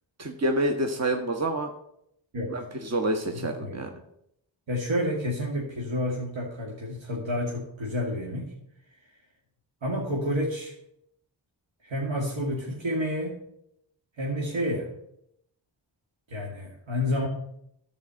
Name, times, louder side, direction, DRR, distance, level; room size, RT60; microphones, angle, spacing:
voice 1, 0.2-1.7 2.5-3.9, right 1 dB, 35° right, 3 dB, 1.4 m, -27 dB
voice 2, 3.3-4.0 4.7-8.5 9.8-10.7 11.8-13.4 14.2-14.9 16.3-17.3, left 1 dB, 75° right, -2 dB, 2.2 m, -30 dB
12.5 x 4.8 x 7.5 m, 0.76 s
cardioid pair, 60°, 46 cm